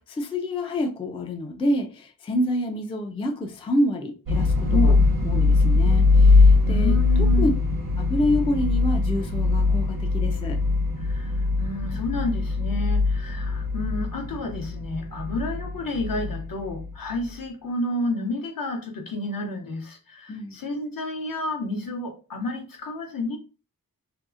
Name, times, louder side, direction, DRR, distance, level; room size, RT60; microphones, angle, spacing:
voice 1, 0.0-4.9 5.2-7.0 7.4-7.5 8.0-10.6 20.3-20.6, left 1 dB, 15° left, 0.3 m, -27 dB
sound 1, 4.3-17.2, left 3 dB, 85° right, 0.8 m, -21 dB
voice 2, 6.6-7.5 11.0-23.4, left 2 dB, 65° left, 0.7 m, -30 dB
2.7 x 2.4 x 2.4 m
wide cardioid pair, 110°, 37 cm